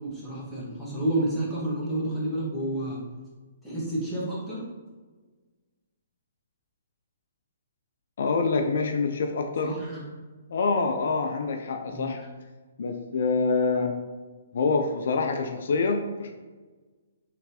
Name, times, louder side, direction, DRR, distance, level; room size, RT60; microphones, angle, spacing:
voice 1, 0.0-3.0 3.6-4.7 9.6-10.1 11.9-12.3, right 1 dB, ahead, -9 dB, 1.3 m, -30 dB
voice 2, 8.2-9.7 10.5-12.2 12.8-13.9 14.5-16.3, left 4 dB, 65° left, 4 dB, 0.4 m, -26 dB
3.8 x 3.3 x 2.8 m, 1.3 s
hypercardioid pair, 145°, 0 cm